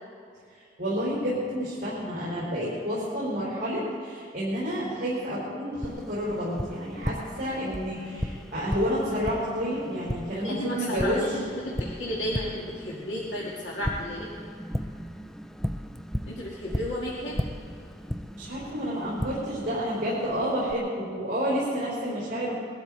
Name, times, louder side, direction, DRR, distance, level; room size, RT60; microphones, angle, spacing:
voice 1, 0.8-11.2 18.3-22.5, equal, 50° right, -8 dB, 4.7 m, -30 dB
Tap, 5.8-20.7, equal, ahead, 0.4 m, -36 dB
voice 2, 10.3-14.3 16.3-17.4, left 1 dB, 85° left, -6 dB, 2.3 m, -33 dB
22.0 x 12.5 x 4.2 m, 2.4 s
head